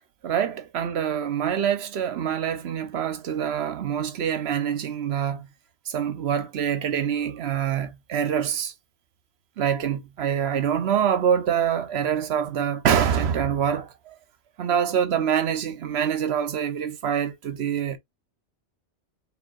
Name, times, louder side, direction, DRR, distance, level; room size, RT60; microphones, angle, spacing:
voice 1, 0.2-5.5 5.9-8.7 9.6-14.2 14.6-18.0, right 8 dB, 65° right, 0.9 m, -25 dB
4.6 x 3.5 x 2.4 m
omnidirectional pair, 1.2 m